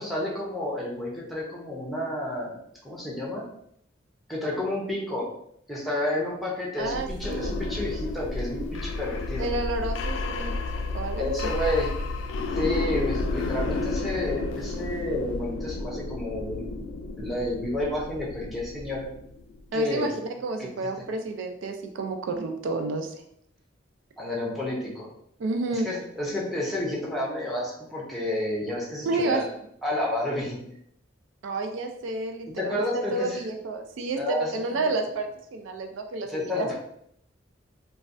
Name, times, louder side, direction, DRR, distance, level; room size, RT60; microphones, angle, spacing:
voice 1, 0.0-3.4 4.3-5.3 5.7-9.5 11.2-11.9 12.5-16.6 17.2-19.1 19.7-20.1 20.6-20.7 24.2-25.1 25.7-29.5 29.8-30.6 32.6-33.4 34.2-34.5 34.8-34.9 36.3-36.8, left 1 dB, ahead, -5 dB, 0.7 m, -30 dB
sound 1, 6.8-19.6, left 3 dB, 85° left, 0.3 m, -31 dB
voice 2, 6.8-7.5 9.4-10.5 10.9-11.3 19.7-20.1 20.4-23.1 25.4-25.9 29.0-29.4 31.4-36.7, right 2 dB, 80° right, 5 dB, 0.3 m, -30 dB
3.1 x 2.2 x 2.5 m, 0.72 s
head